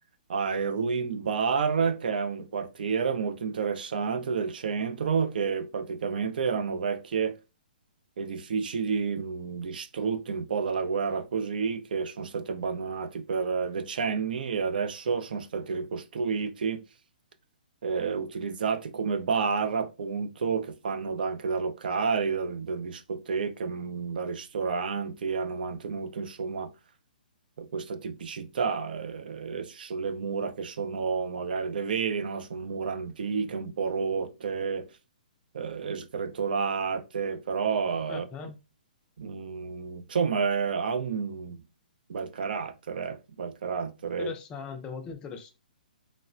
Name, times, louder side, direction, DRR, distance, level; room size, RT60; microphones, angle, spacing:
voice 1, 0.3-7.3 8.2-16.8 17.8-26.7 27.6-34.8 35.5-38.3 39.2-41.6 42.1-44.3, right 5 dB, 70° right, 0.4 m, -30 dB
voice 2, 38.1-38.6 44.2-45.5, left 5 dB, 15° left, 0.4 m, -39 dB
3.1 x 2.0 x 2.4 m
hypercardioid pair, 150°, 5 cm